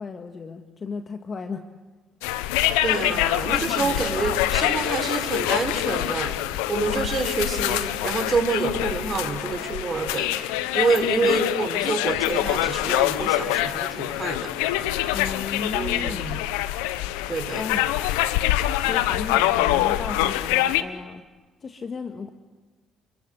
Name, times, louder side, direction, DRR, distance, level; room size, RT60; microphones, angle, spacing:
voice 1, 0.0-1.6 3.8-4.1 11.2-11.4 11.7-11.9 15.1-16.3 17.5-17.9 18.9-21.3 21.6-22.3, left 5 dB, 45° left, 6 dB, 1.8 m, -34 dB
sound 1, 2.2-20.8, left 14 dB, 85° left, 1.0 m, -25 dB
voice 2, 2.8-10.4 10.7-14.5 15.7-16.4 17.3-17.6, right 4 dB, 40° right, 5 dB, 5.3 m, -27 dB
30.0 x 23.5 x 8.3 m, 1.3 s
hypercardioid pair, 60°, 0 cm